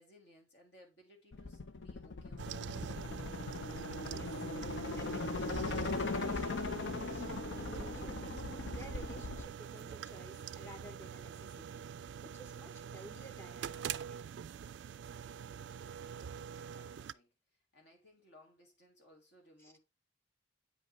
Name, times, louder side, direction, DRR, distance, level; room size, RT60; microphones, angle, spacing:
voice 1, 0.0-2.9 15.1-17.3 17.7-19.8, left 1 dB, 65° left, 2.5 m, -63 dB
sound 1, 1.3-9.5, left 3 dB, 85° left, 0.7 m, -39 dB
sound 2, 2.4-17.1, right 8 dB, 70° right, 0.3 m, -44 dB
voice 2, 4.0-4.5 5.0-8.3 8.7-11.9 12.2-14.3 19.6-19.7, right 1 dB, 15° left, 0.7 m, -54 dB
8.4 x 5.3 x 3.0 m
head